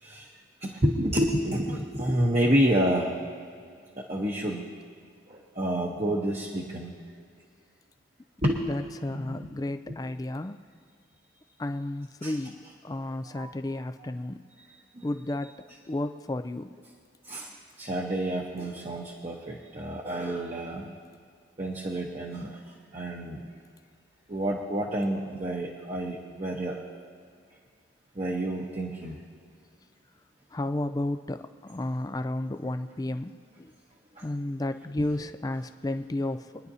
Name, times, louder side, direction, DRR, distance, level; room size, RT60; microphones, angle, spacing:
voice 1, 0.6-3.2 4.0-4.6 5.3-6.9 8.4-9.5 9.9-10.0 12.2-12.4 13.2-14.1 14.9-15.1 17.3-17.5 17.8-20.9 21.6-22.6 22.9-23.4 24.3-26.8 28.1-29.1 34.2-34.3, right 1 dB, 35° right, -2 dB, 1.1 m, -29 dB
voice 2, 8.6-10.6 11.6-14.4 15.0-15.5 15.9-16.7 30.5-33.7 34.2-36.5, left 1 dB, 20° left, 9 dB, 0.4 m, -32 dB
24.5 x 10.5 x 2.8 m, 2.2 s
head